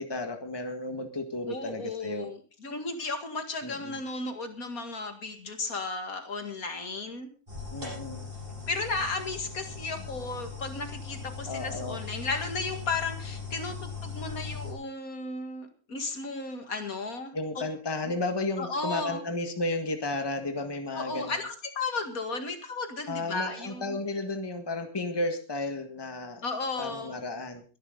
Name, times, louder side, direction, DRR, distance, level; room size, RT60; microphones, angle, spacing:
voice 1, 0.0-2.3 3.6-4.0 7.7-8.2 11.5-12.0 17.3-21.4 23.1-26.4 26.8-27.6, left 2 dB, 15° left, 6 dB, 1.7 m, -33 dB
voice 2, 1.5-7.3 8.7-17.3 18.0-18.1 18.6-19.2 20.9-23.9 26.4-27.2, left 3 dB, 65° left, 7 dB, 2.4 m, -34 dB
sound 1, 7.5-14.7, left 5 dB, 35° right, 7.0 m, -39 dB
22.5 x 11.0 x 4.0 m, 0.36 s
omnidirectional pair, 1.6 m